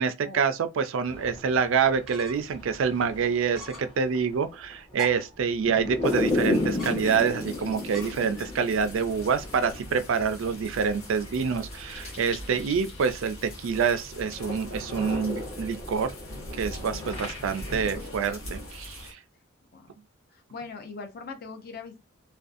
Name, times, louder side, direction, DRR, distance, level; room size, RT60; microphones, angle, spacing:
voice 1, 0.0-16.1 16.5-19.2, right 6 dB, 70° right, 0.4 m, -27 dB
sound 1, 1.1-13.2 13.5-17.8, left 2 dB, 25° left, 1.1 m, -35 dB
sound 2, 2.1-2.6 2.9-3.0 3.5-4.0 4.9-5.4 6.8-7.4 7.9-8.6, left 1 dB, ahead, 0.7 m, -42 dB
sound 3, 6.0-19.1, left 1 dB, 75° left, 1.1 m, -41 dB
voice 2, 16.9-17.2 19.1-19.2 19.7-20.0 20.3-22.0, left 4 dB, 45° left, 0.5 m, -42 dB
2.5 x 2.3 x 2.4 m
head